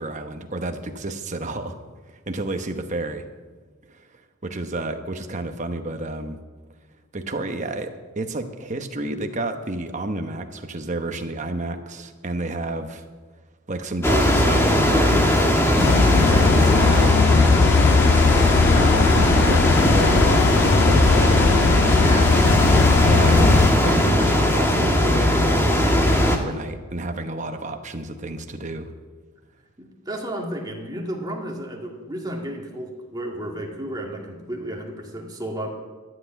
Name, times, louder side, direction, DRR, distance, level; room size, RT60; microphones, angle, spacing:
voice 1, 0.0-1.8 2.3-3.3 3.9-4.1 4.4-6.4 7.1-13.0 13.7-17.2 18.7-22.1 23.0-28.9, right 2 dB, 35° right, 6 dB, 1.0 m, -30 dB
sound 1, 14.0-26.4, left 1 dB, 10° left, 1.3 m, -19 dB
sound 2, 15.8-23.7, left 5 dB, 50° left, 0.4 m, -19 dB
voice 2, 22.0-22.4 29.8-35.7, right 1 dB, 20° right, 0 dB, 1.9 m, -32 dB
13.0 x 8.0 x 9.0 m, 1.4 s
head